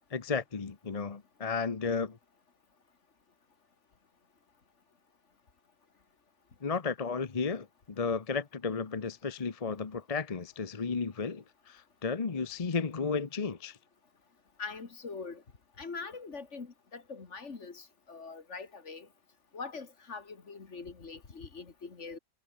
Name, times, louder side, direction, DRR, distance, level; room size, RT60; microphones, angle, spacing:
voice 1, 0.1-2.2 6.6-13.8, left 5 dB, 30° left, 0.9 m, -33 dB
voice 2, 14.6-15.4 15.8-19.1 19.5-22.2, left 4 dB, 60° left, 2.3 m, -43 dB
omnidirectional pair, 1.4 m